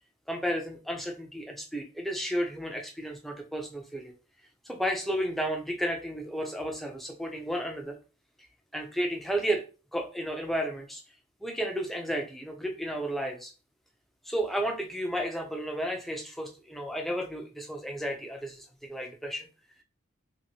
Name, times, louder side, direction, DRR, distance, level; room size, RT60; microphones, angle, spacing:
voice 1, 0.3-4.1 4.6-8.0 8.7-9.6 9.9-11.0 11.4-13.5 14.2-19.5, equal, ahead, 2 dB, 0.4 m, -32 dB
2.7 x 2.5 x 2.8 m, 0.33 s
head